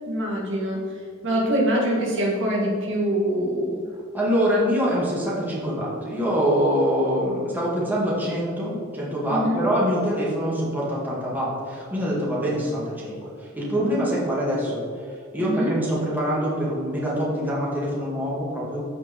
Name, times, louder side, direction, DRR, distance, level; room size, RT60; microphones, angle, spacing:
voice 1, 0.1-0.8 1.2-3.8 9.3-9.7 15.4-15.7, equal, 60° right, -3 dB, 1.9 m, -24 dB
voice 2, 4.1-14.8 15.3-18.8, equal, 10° right, -7 dB, 2.3 m, -24 dB
14.5 x 4.8 x 3.8 m, 2.3 s
head